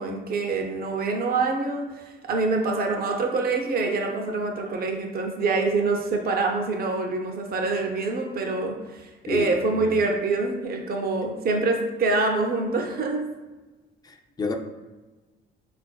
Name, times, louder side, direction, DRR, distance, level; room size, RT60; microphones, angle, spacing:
voice 1, 0.0-13.3, right 3 dB, 50° right, 2 dB, 0.6 m, -25 dB
voice 2, 9.3-9.9 14.0-14.6, left 3 dB, 20° left, 4 dB, 0.3 m, -30 dB
4.0 x 2.4 x 2.2 m, 1.2 s
cardioid pair, 90°, 20 cm